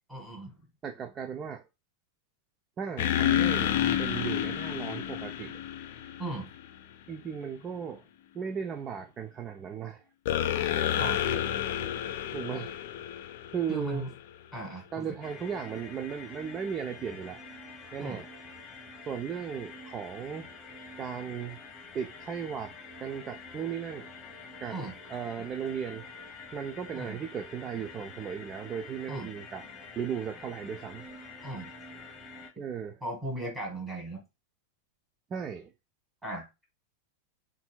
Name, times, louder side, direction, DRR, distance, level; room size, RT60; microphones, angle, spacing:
voice 1, 0.1-0.7 6.2-6.5 11.0-11.2 13.7-14.2 14.5-15.2 18.0-18.2 24.7-24.9 26.9-27.2 29.1-29.3 31.4-31.7 33.0-34.2 36.2-36.5, right 1 dB, 5° right, 2.0 m, -37 dB
voice 2, 0.8-1.7 2.8-5.6 7.1-8.0 8.3-10.0 12.3-12.8 13.5-14.1 14.9-17.4 17.9-18.3 19.1-20.5 21.0-21.6 21.9-22.7 23.0-24.1 24.6-24.8 25.1-26.1 26.5-29.6 30.0-31.0 32.6-33.0 35.3-35.7, right 7 dB, 25° right, 0.4 m, -36 dB
sound 1, 3.0-6.7 10.3-14.2, left 10 dB, 50° left, 0.5 m, -30 dB
sound 2, 15.2-32.5, left 4 dB, 20° left, 1.2 m, -47 dB
5.4 x 2.6 x 2.3 m
figure-of-eight pair, 90°, 0 cm